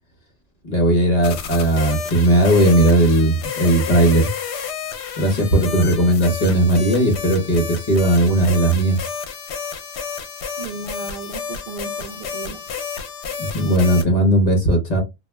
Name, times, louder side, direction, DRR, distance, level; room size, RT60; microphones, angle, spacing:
voice 1, 0.6-4.3 5.2-9.1 13.4-15.0, right 1 dB, 40° left, 0.7 m, -17 dB
sound 1, 1.2-14.0, left 6 dB, 70° left, 0.8 m, -31 dB
voice 2, 10.6-12.6, right 4 dB, 60° right, 0.5 m, -35 dB
2.3 x 2.0 x 3.2 m
omnidirectional pair, 1.2 m